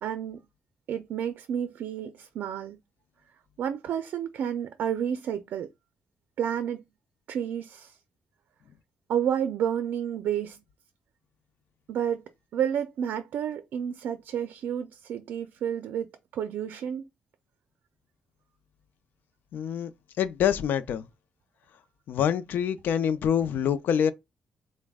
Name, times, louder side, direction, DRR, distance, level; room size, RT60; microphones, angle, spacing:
voice 1, 0.0-0.4 0.9-2.8 3.6-5.7 6.4-6.8 7.3-8.0 9.1-10.6 11.9-12.2 12.5-17.1, right 9 dB, 80° right, 0.4 m, -30 dB
voice 2, 19.5-19.9 20.2-21.1 22.1-24.1, left 8 dB, 75° left, 0.4 m, -26 dB
4.0 x 2.1 x 3.4 m
cardioid pair, 145°, 3 cm